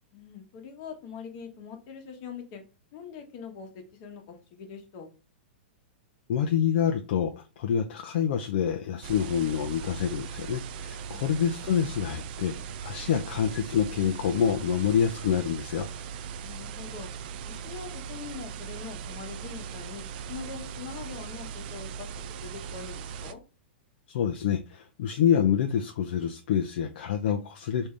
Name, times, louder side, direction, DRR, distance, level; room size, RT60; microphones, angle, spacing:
voice 1, 0.1-2.6 2.9-5.1 11.1-11.5 16.4-17.1 17.4-22.1 22.4-23.4, left 6 dB, 45° left, 1.0 m, -43 dB
voice 2, 6.3-15.9 24.1-27.9, left 8 dB, 60° left, 0.4 m, -27 dB
sound 1, 9.0-23.3, right 7 dB, 50° right, 0.4 m, -39 dB
3.5 x 2.7 x 3.1 m
hypercardioid pair, 130°, 6 cm